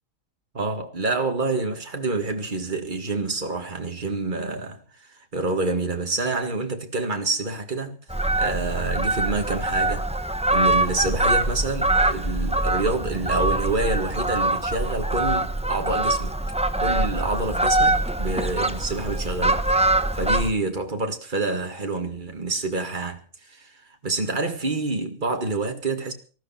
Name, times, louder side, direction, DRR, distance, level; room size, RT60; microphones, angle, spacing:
voice 1, 0.5-10.0 10.5-16.3 16.8-23.7 24.0-26.1, right 3 dB, 35° right, 2.1 m, -28 dB
Fowl, 8.1-20.5, right 1 dB, 5° right, 0.9 m, -23 dB
19.0 x 13.0 x 5.7 m
omnidirectional pair, 1.5 m